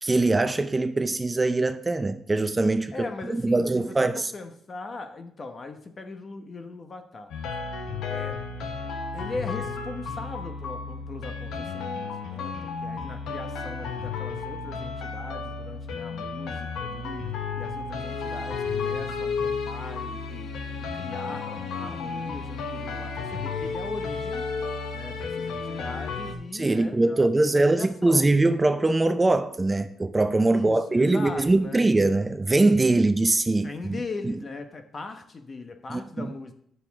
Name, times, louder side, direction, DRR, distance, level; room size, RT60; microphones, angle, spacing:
voice 1, 0.0-2.9 3.3-4.3 26.5-34.0 34.2-34.4 35.9-36.3, right 2 dB, 20° right, 0.5 m, -22 dB
voice 2, 2.9-7.3 8.1-8.4 9.1-20.5 20.9-24.5 24.9-28.3 30.5-31.8 33.6-36.5, left 3 dB, 35° left, 1.0 m, -39 dB
sound 1, 7.3-26.3, left 4 dB, 80° left, 1.0 m, -33 dB
9.4 x 6.6 x 3.6 m
cardioid pair, 90°, 0 cm